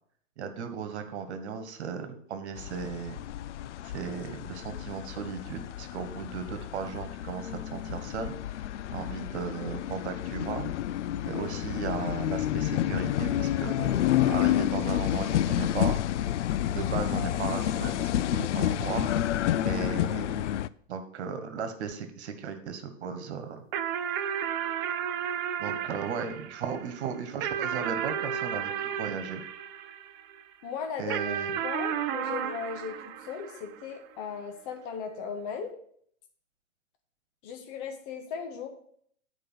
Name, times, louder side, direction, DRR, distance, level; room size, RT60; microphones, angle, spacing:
voice 1, 0.4-3.2 3.9-8.6 8.9-10.7 11.2-16.0 16.7-19.1 19.6-20.5 20.9-23.6 25.6-29.4 31.0-31.5, right 6 dB, 55° right, 9 dB, 1.6 m, -36 dB
sound 1, 2.6-20.7, left 12 dB, 65° left, 0.5 m, -29 dB
sound 2, 23.7-30.4 31.1-33.9, right 9 dB, 20° right, 0.3 m, -33 dB
voice 2, 30.6-31.4 31.6-35.7 37.4-38.7, left 6 dB, 40° left, 5 dB, 1.7 m, -37 dB
9.9 x 5.0 x 6.2 m, 0.63 s
figure-of-eight pair, 110°, 39 cm